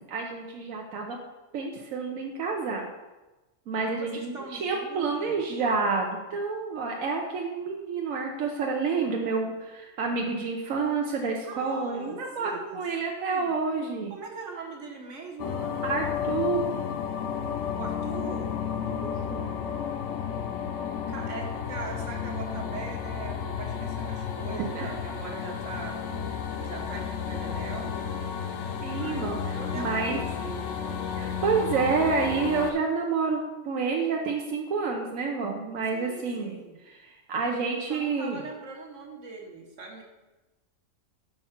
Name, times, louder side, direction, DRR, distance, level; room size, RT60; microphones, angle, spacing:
voice 1, 0.1-1.2 1.5-2.9 3.7-14.1 15.8-16.8 19.0-19.6 24.7-24.9 28.8-30.2 31.1-38.4, right 4 dB, 85° right, 1 dB, 1.1 m, -29 dB
voice 2, 3.8-5.4 11.5-12.8 13.1-13.6 14.1-16.4 16.8-17.0 17.7-18.5 21.1-26.0 26.6-28.0 28.8-30.7 35.9-36.8 37.9-40.0, right 4 dB, 65° right, 1 dB, 1.5 m, -41 dB
sound 1, 15.4-32.7, left 7 dB, 65° left, 0.9 m, -32 dB
5.5 x 4.6 x 5.7 m, 1.1 s
omnidirectional pair, 1.4 m